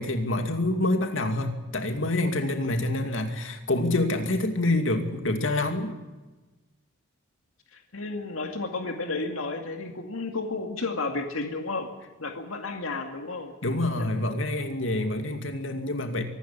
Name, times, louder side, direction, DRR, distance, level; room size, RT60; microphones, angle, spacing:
voice 1, 0.0-5.9 13.6-16.2, left 2 dB, 65° left, 6 dB, 2.5 m, -27 dB
voice 2, 7.7-11.9 12.2-13.5 14.0-14.1, left 3 dB, 90° left, 4 dB, 2.2 m, -32 dB
24.5 x 13.0 x 9.9 m, 1.2 s
head